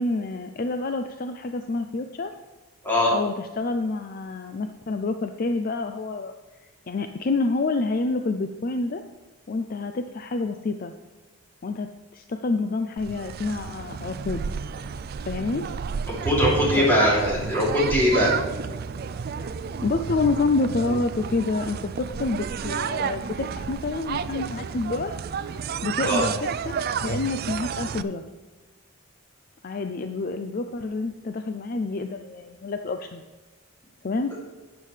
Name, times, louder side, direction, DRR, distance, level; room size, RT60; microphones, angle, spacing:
voice 1, 0.0-2.3 3.1-6.3 6.9-9.0 9.5-10.9 11.6-14.4 15.3-15.7 16.8-16.9 19.3-19.5 19.8-25.2 25.8-28.2 29.6-33.2 34.0-34.4, left 3 dB, 40° left, 7 dB, 0.4 m, -28 dB
sound 1, 13.0-28.0, right 6 dB, 45° right, 0.3 m, -31 dB
voice 2, 16.2-18.3 26.0-26.2, equal, 10° left, -6 dB, 3.0 m, -21 dB
12.0 x 9.0 x 3.3 m, 1.3 s
head